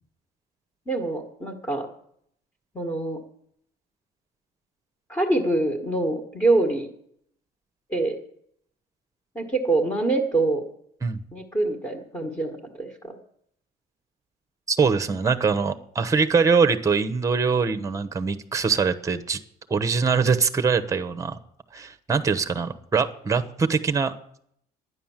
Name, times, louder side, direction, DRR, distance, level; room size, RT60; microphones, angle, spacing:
voice 1, 0.9-1.9 2.8-3.2 5.1-6.9 7.9-8.2 9.4-10.6 11.3-13.2, right 2 dB, 15° left, 4 dB, 1.8 m, -25 dB
voice 2, 14.7-19.4 19.7-21.4 21.7-24.1, right 5 dB, 20° right, 10 dB, 1.0 m, -23 dB
11.0 x 9.8 x 7.3 m, 0.69 s
cardioid pair, 110°, 17 cm